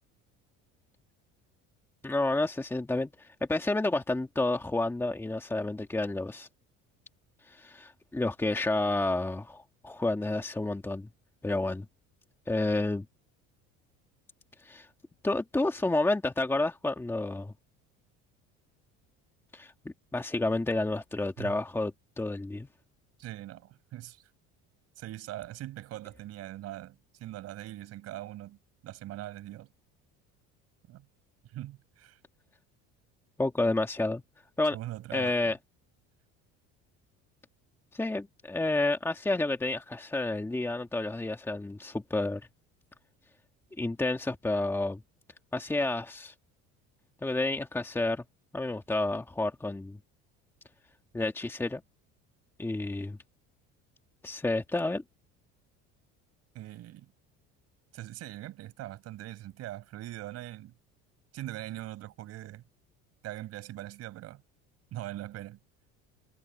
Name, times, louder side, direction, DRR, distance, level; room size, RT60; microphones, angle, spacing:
voice 1, 2.0-6.5 7.5-11.1 11.4-11.9 12.5-13.1 14.6-14.9 15.2-17.5 19.5-19.7 20.1-22.7 33.4-34.2 34.6-34.8 35.1-35.6 37.9-42.4 43.8-45.0 45.5-46.3 47.2-48.2 48.5-50.0 51.1-51.8 52.6-53.2 54.2-55.0, left 2 dB, 10° left, 1.8 m, -30 dB
voice 2, 23.2-24.2 25.0-28.6 28.8-29.7 30.9-31.1 31.5-32.2 34.7-35.5 56.5-57.1 57.9-60.7 61.3-62.6 63.2-64.4 64.9-65.6, right 14 dB, 55° right, 6.0 m, -41 dB
cardioid pair, 135°, 30 cm